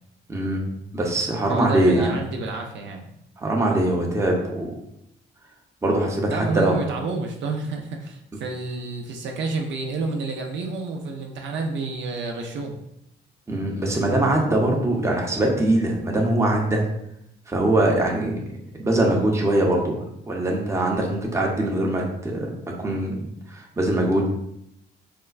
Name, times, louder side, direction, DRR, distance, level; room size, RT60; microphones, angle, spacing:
voice 1, 0.3-2.2 3.4-4.7 5.8-6.8 13.5-16.8 17.5-18.4 18.7-22.5 22.8-24.3, right 1 dB, 15° right, -1 dB, 0.7 m, -22 dB
voice 2, 1.5-3.0 6.3-12.8, right 3 dB, 70° right, 2 dB, 0.5 m, -29 dB
4.3 x 2.1 x 2.3 m, 0.79 s
cardioid pair, 90°, 20 cm